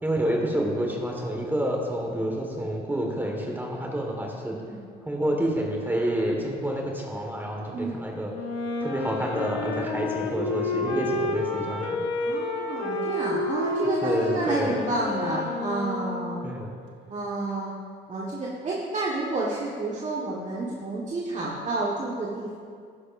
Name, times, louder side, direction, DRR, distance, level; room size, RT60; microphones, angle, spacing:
voice 1, 0.0-4.5 5.1-8.3 8.8-12.0 14.0-14.8 16.4-16.7, right 1 dB, 10° right, 0 dB, 1.6 m, -28 dB
voice 2, 7.7-8.1 12.2-16.4 17.1-17.7 18.1-22.6, right 2 dB, 35° right, -5 dB, 1.5 m, -30 dB
Wind instrument woodwind instrument, 8.3-16.7, left 2 dB, 70° left, 1.3 m, -30 dB
11.5 x 10.5 x 2.6 m, 2.2 s
supercardioid pair, 90°, 19 cm